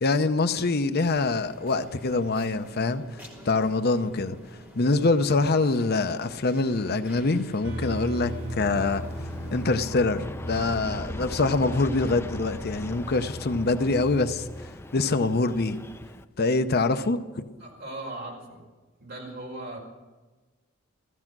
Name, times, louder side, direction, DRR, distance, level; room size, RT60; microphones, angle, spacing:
voice 1, 0.0-3.0 3.4-4.4 4.8-9.0 9.5-14.5 14.9-15.8 16.4-17.5, left 3 dB, 50° left, 9 dB, 0.7 m, -24 dB
sound 1, 1.1-9.9, equal, 10° right, 3.2 m, -48 dB
sound 2, 7.6-14.7, equal, 80° right, 2.8 m, -38 dB
Aircraft, 8.2-16.2, left 1 dB, 10° left, 0.5 m, -40 dB
voice 2, 17.6-18.6 19.0-19.8, right 2 dB, 55° right, 0 dB, 5.1 m, -38 dB
15.5 x 15.0 x 6.1 m, 1.3 s
head